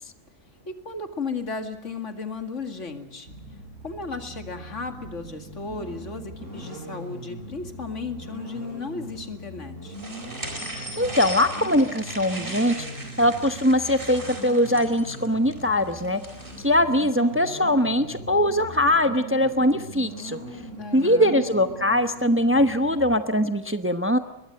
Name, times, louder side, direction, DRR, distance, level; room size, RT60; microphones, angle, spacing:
voice 1, 0.7-3.3 3.8-9.9 20.8-21.4, left 4 dB, 70° left, 7 dB, 2.6 m, -35 dB
sound 1, 3.2-23.1, right 1 dB, 75° right, 6.6 m, -40 dB
sound 2, 9.9-16.8, right 1 dB, 40° right, 4.6 m, -38 dB
voice 2, 11.0-12.9 13.2-16.2 16.6-20.4 20.9-24.2, left 1 dB, 10° right, 9 dB, 0.9 m, -21 dB
23.0 x 21.0 x 7.8 m, 0.92 s
omnidirectional pair, 1.3 m